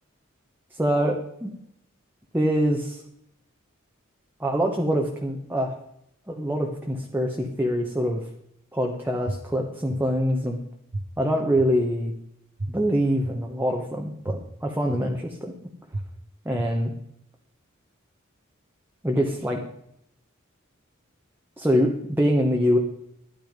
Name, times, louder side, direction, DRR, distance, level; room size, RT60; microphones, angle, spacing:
voice 1, 0.8-1.5 2.3-3.0 4.4-5.8 6.3-8.2 8.7-10.6 11.2-12.1 12.7-15.5 16.4-16.9 19.0-19.6 21.6-22.8, equal, 10° right, 1 dB, 1.2 m, -24 dB
sound 1, 9.3-9.4 9.9-10.0 10.9-11.0 11.6-11.7 12.6-12.7 13.2-13.3 14.3-14.4 14.9-15.0 15.9-16.0 16.6-16.7, right 2 dB, 50° right, 1.4 m, -30 dB
12.0 x 10.0 x 5.3 m, 0.74 s
head